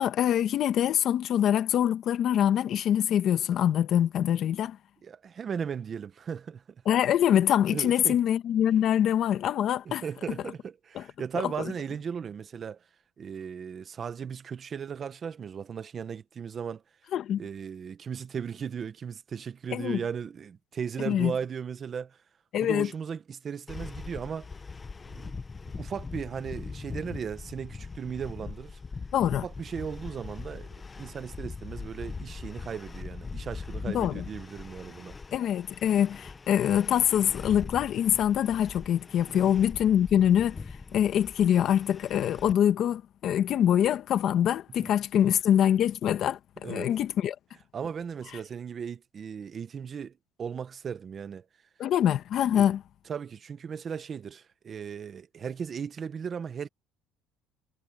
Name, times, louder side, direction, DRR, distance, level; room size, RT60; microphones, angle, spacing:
voice 1, 0.0-4.8 6.8-10.0 10.9-11.0 11.4-11.5 17.1-17.4 19.7-20.0 21.0-21.3 22.5-22.9 29.1-29.4 33.9-34.2 35.3-40.6 40.9-47.3 51.8-52.8, left 10 dB, 45° left, 1.5 m, -24 dB
voice 2, 5.0-6.6 7.7-8.2 9.8-12.8 13.2-16.8 17.4-22.2 22.6-24.5 25.1-25.3 25.7-28.8 29.4-30.7 31.0-35.2 39.3-39.5 44.8-44.9 46.6-46.9 47.7-51.4 52.5-52.7 53.1-56.7, right 7 dB, 30° right, 1.0 m, -37 dB
sound 1, 23.7-42.5, left 4 dB, 20° left, 0.9 m, -41 dB
cardioid pair, 145°, 0 cm